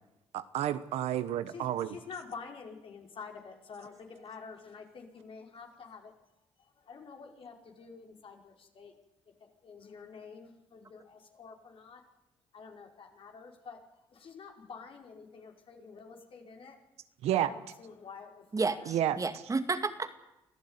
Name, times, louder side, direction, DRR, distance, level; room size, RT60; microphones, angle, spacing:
voice 1, 0.3-2.0 17.2-17.5 18.9-19.2, right 12 dB, 80° right, 13 dB, 1.3 m, -30 dB
voice 2, 1.5-6.1 6.6-8.9 9.4-12.0 12.5-13.8 14.1-16.8 17.4-18.9, left 5 dB, 60° left, 2 dB, 5.1 m, -48 dB
voice 3, 18.5-20.1, right 3 dB, 30° right, 9 dB, 2.2 m, -32 dB
25.0 x 14.5 x 9.7 m, 0.91 s
supercardioid pair, 65°, 11 cm